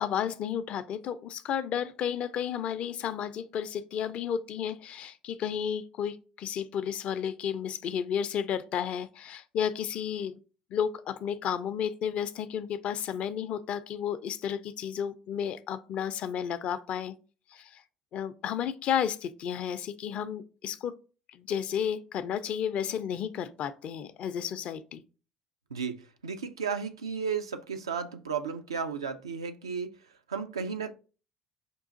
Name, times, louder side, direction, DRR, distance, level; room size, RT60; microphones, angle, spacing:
voice 1, 0.0-10.4 10.7-17.1 17.5-17.8 18.1-20.9 21.3-25.0, left 8 dB, 55° left, 0.4 m, -32 dB
voice 2, 25.7-30.9, right 6 dB, 85° right, 0.4 m, -34 dB
5.2 x 2.4 x 3.7 m
hypercardioid pair, 60°, 3 cm